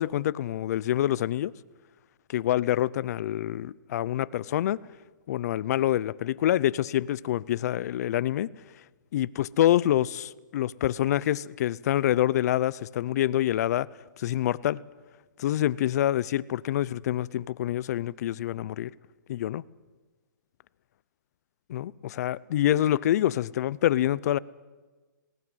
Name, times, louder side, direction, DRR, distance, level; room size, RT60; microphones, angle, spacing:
voice 1, 0.0-1.5 2.3-4.8 5.3-8.5 9.1-13.9 14.2-14.8 15.4-18.9 19.3-19.6 21.7-24.4, left 12 dB, 55° left, 0.6 m, -26 dB
19.0 x 18.0 x 9.2 m
hypercardioid pair, 150°, 11 cm